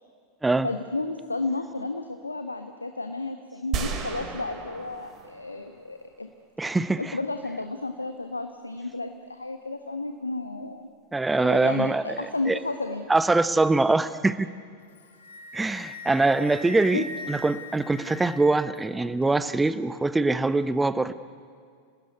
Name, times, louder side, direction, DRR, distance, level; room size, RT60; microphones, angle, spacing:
voice 1, 0.6-6.3 7.0-10.9 11.5-13.1 16.0-16.1 16.9-17.0, left 2 dB, 80° left, 7 dB, 1.2 m, -32 dB
sound 1, 3.7-6.1, right 6 dB, 35° right, 3.4 m, -34 dB
voice 2, 6.6-7.0 11.1-12.6 13.1-14.5 15.5-21.1, right 3 dB, 10° right, 15 dB, 0.9 m, -23 dB
Wind instrument woodwind instrument, 14.8-18.8, left 1 dB, 65° left, 2.6 m, -41 dB
29.0 x 19.0 x 9.4 m, 2.2 s
figure-of-eight pair, 90°, 0 cm